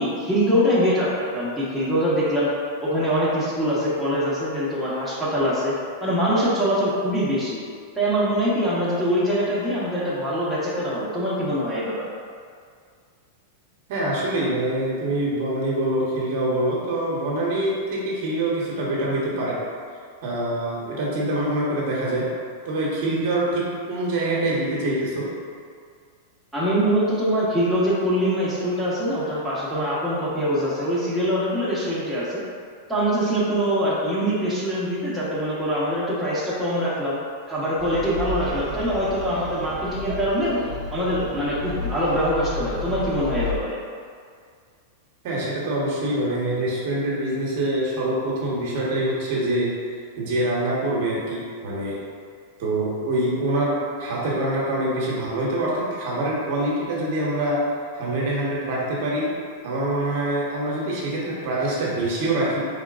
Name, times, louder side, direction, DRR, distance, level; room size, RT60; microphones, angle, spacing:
voice 1, 0.0-2.5 2.8-5.7 6.0-7.6 7.9-12.1 26.5-32.4 32.9-37.2 37.5-40.6 40.9-43.8, equal, ahead, -10 dB, 1.2 m, -23 dB
voice 2, 13.9-19.6 20.2-22.3 22.6-25.3 45.2-49.8 50.2-52.0 52.6-57.6 57.9-59.4 59.6-62.7, right 1 dB, 60° right, -5 dB, 1.1 m, -25 dB
sound 1, 37.8-43.6, left 2 dB, 25° right, 0.6 m, -32 dB
4.3 x 3.7 x 2.5 m, 2.1 s
hypercardioid pair, 125°, 0 cm